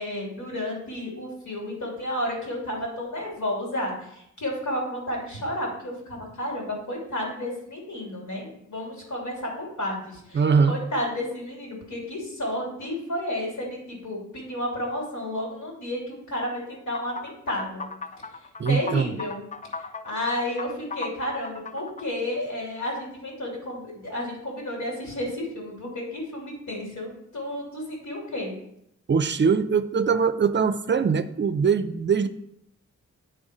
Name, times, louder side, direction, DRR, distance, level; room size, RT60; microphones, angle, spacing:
voice 1, 0.0-17.9 18.7-19.4 19.8-28.5, left 1 dB, 85° left, -2 dB, 2.9 m, -32 dB
voice 2, 10.3-10.8 18.6-19.2 29.1-32.3, right 5 dB, 40° right, 12 dB, 0.4 m, -22 dB
sound 1, 16.9-22.1, left 4 dB, 25° left, 0.4 m, -37 dB
9.0 x 4.0 x 4.9 m, 0.75 s
cardioid pair, 85°, 30 cm